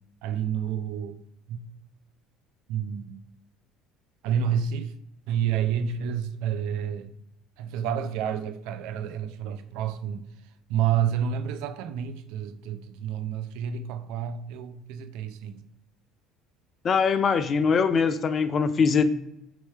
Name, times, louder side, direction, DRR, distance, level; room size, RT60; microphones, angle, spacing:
voice 1, 0.2-1.2 1.5-1.6 2.7-3.2 4.2-4.9 5.3-7.1 7.6-10.2 10.7-15.6, right 8 dB, 75° right, 0.4 m, -29 dB
voice 2, 16.8-19.0, left 5 dB, 40° left, 0.4 m, -22 dB
4.4 x 2.9 x 3.2 m
supercardioid pair, 90°, 0 cm